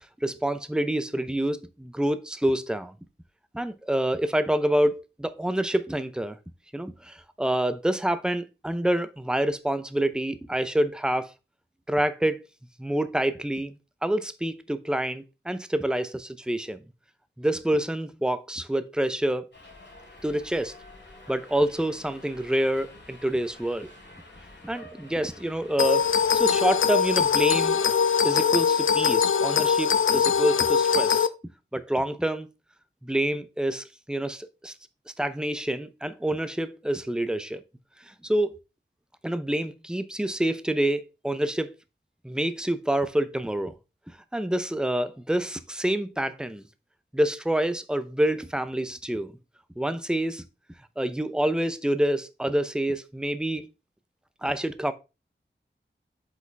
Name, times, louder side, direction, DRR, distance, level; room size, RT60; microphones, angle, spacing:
voice 1, 0.0-2.9 3.5-6.4 6.7-11.3 11.9-12.4 12.8-16.8 17.4-19.5 20.2-20.7 21.3-23.9 24.6-27.8 28.2-31.3 31.7-32.5 33.0-34.7 35.2-37.6 38.1-38.6 39.2-41.7 42.2-43.7 44.3-46.6 47.1-49.3 49.8-50.4 51.0-53.7 54.4-54.9, right 1 dB, 5° right, 0.6 m, -27 dB
Subway metro underground, 19.5-28.1, left 1 dB, 60° left, 3.2 m, -49 dB
sound 1, 25.8-31.3, left 7 dB, 85° left, 0.5 m, -22 dB
8.0 x 5.0 x 3.4 m
wide cardioid pair, 75°, 20 cm